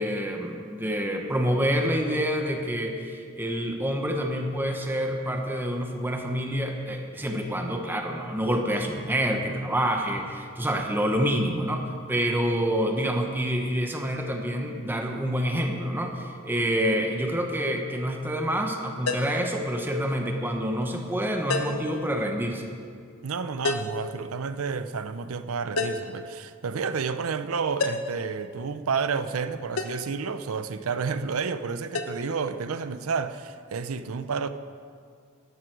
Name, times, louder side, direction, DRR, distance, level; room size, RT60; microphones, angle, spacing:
voice 1, 0.0-11.8 12.1-22.6, equal, 10° right, 1.0 m, -27 dB
sound 1, 19.1-19.5 21.5-21.9 23.6-24.0 25.8-26.2 27.8-28.2 29.8-30.0 31.9-32.1, left 3 dB, 85° left, 1.0 m, -29 dB
voice 2, 23.2-34.5, right 5 dB, 85° right, 0.6 m, -30 dB
14.0 x 11.0 x 4.7 m
head